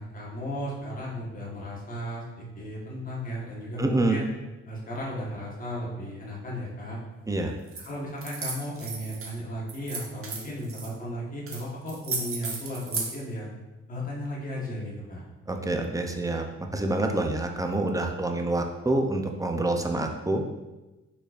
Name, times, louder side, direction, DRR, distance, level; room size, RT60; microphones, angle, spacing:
voice 1, 0.0-4.2 4.7-7.0 7.8-13.5 13.9-15.2, equal, 30° left, -4 dB, 1.3 m, -35 dB
voice 2, 3.8-4.2 7.3-7.5 15.5-20.4, right 2 dB, 10° right, 4 dB, 0.5 m, -27 dB
sound 1, 7.7-7.9 8.2-9.3 9.7-10.9 11.5-11.6 11.9-13.1, right 4 dB, 45° right, 1.1 m, -34 dB
5.3 x 4.0 x 2.5 m, 1.1 s
cardioid pair, 90°, 30 cm